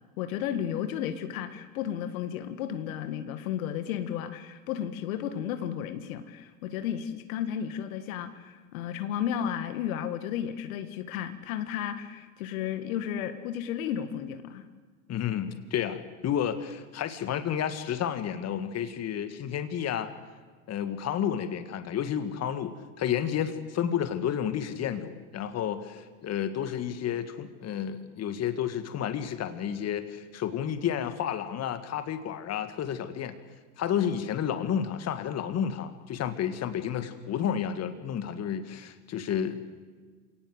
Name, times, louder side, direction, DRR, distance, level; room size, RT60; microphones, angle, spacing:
voice 1, 0.2-14.7, left 9 dB, 65° left, 9 dB, 1.9 m, -33 dB
voice 2, 15.1-20.1 20.7-33.4 33.8-39.6, left 9 dB, 35° left, 9 dB, 2.0 m, -31 dB
27.5 x 18.0 x 8.1 m, 1.5 s
hypercardioid pair, 100°, 44 cm